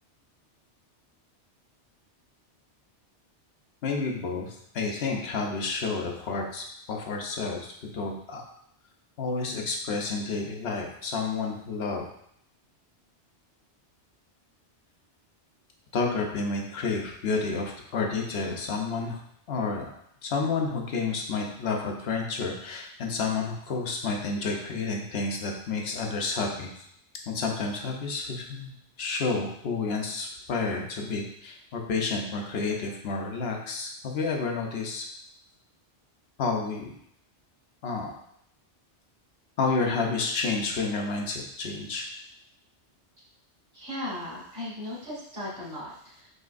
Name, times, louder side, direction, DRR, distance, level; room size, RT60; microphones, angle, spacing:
voice 1, 3.8-8.4 9.2-12.1 15.9-19.2 19.5-19.9 20.2-26.7 27.3-35.0 36.4-36.9 37.8-38.1 39.6-42.1, left 4 dB, 65° left, 1 dB, 0.9 m, -30 dB
voice 2, 43.7-46.3, left 1 dB, 50° right, -8 dB, 2.1 m, -37 dB
6.3 x 2.8 x 2.5 m, 0.71 s
omnidirectional pair, 1.2 m